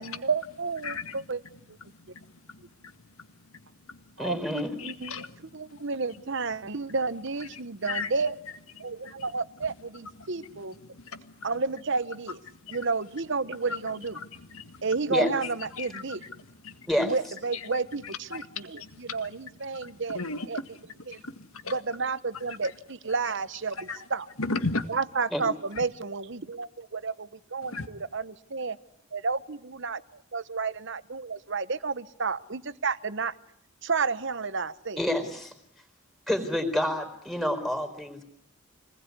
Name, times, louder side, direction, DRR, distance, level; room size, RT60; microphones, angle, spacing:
voice 1, 0.0-1.4 4.2-5.2 5.5-8.3 8.8-10.7 11.4-12.4 12.7-14.2 14.8-16.2 17.0-20.2 20.5-20.6 21.1-21.2 21.7-23.8 24.1-24.3 24.9-28.8 29.1-30.0 30.3-33.3 33.8-35.0, right 4 dB, 55° right, 15 dB, 1.0 m, -31 dB
voice 2, 0.8-1.3 1.8-3.3 3.9-4.1 4.8-5.9 6.6-6.7 7.4-8.1 8.8-9.3 10.2-11.5 12.6-12.8 13.7-13.8 14.1-14.9 15.4-16.9 17.5-17.7 18.0-20.7 21.1-21.8 22.3-22.7 23.7-24.1 24.4-24.9 25.8-25.9 27.6-27.9, left 3 dB, 75° left, 9 dB, 2.0 m, -38 dB
voice 3, 4.2-4.8 15.1-15.3 16.8-17.1 25.3-25.4 35.0-35.5 36.3-38.2, left 1 dB, ahead, 5 dB, 4.3 m, -28 dB
26.0 x 20.0 x 9.7 m, 0.73 s
head